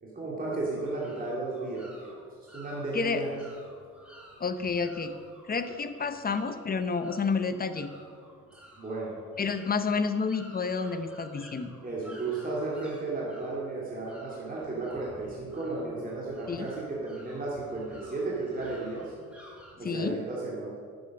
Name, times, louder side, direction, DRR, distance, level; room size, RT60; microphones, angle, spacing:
voice 1, 0.0-2.1 2.5-3.3 8.8-9.2 11.8-19.1 19.8-20.8, right 3 dB, 30° right, -5 dB, 2.4 m, -34 dB
sound 1, 0.7-19.7, equal, 5° right, 2.7 m, -53 dB
voice 2, 4.4-5.2 5.5-7.9 9.4-11.7 16.5-16.7 19.8-20.2, left 5 dB, 30° left, 10 dB, 0.8 m, -30 dB
9.8 x 8.0 x 6.4 m, 2.1 s
cardioid pair, 90°, 30 cm